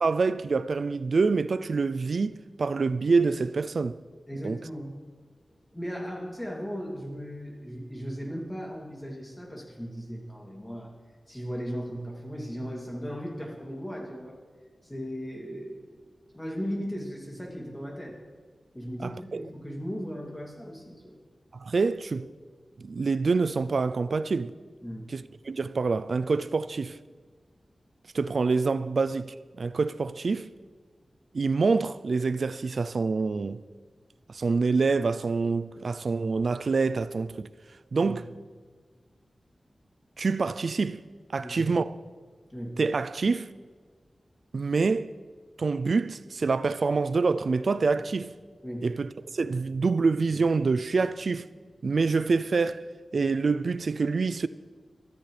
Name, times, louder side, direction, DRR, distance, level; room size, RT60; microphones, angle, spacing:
voice 1, 0.0-4.0 4.4-4.6 19.0-19.5 21.5-22.3 22.8-24.5 25.1-27.0 28.1-30.5 31.3-33.6 34.3-37.5 37.9-38.3 40.2-41.0 41.3-41.9 42.8-43.5 44.5-45.1 45.6-48.3 48.8-51.5 51.8-52.8 53.1-54.5, right 4 dB, 65° right, 0.4 m, -26 dB
voice 2, 4.3-5.0 5.7-10.9 11.3-14.4 14.8-16.1 16.3-18.2 18.7-21.2 24.8-25.1 38.0-38.2 41.4-41.7 42.5-42.8 48.6-48.9, equal, 10° left, 2.7 m, -37 dB
23.0 x 13.0 x 3.4 m
wide cardioid pair, 100°, 0 cm